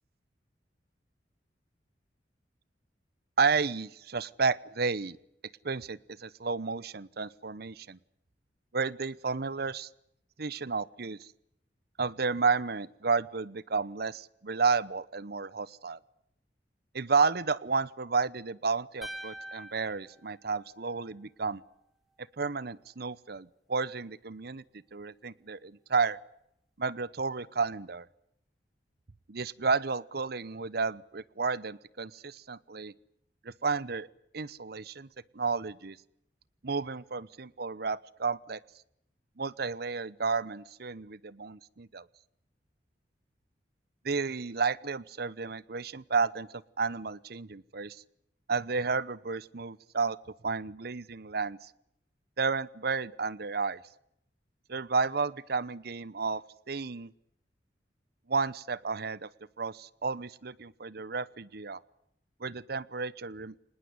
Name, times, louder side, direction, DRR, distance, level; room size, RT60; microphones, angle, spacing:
voice 1, 3.4-5.2 5.6-8.0 8.7-9.9 10.4-11.3 12.0-16.0 16.9-21.6 22.4-24.6 24.9-26.2 26.8-28.1 29.3-32.9 33.4-34.1 34.3-35.1 35.3-36.0 36.6-38.6 39.4-42.1 44.0-48.0 48.5-50.2 50.4-51.7 52.4-53.8 54.7-57.1 58.3-59.3 59.6-61.8 62.4-63.5, right 4 dB, 65° right, 20 dB, 0.9 m, -32 dB
sound 1, 19.0-21.3, right 1 dB, ahead, 1.9 m, -45 dB
25.5 x 20.0 x 9.7 m, 0.76 s
head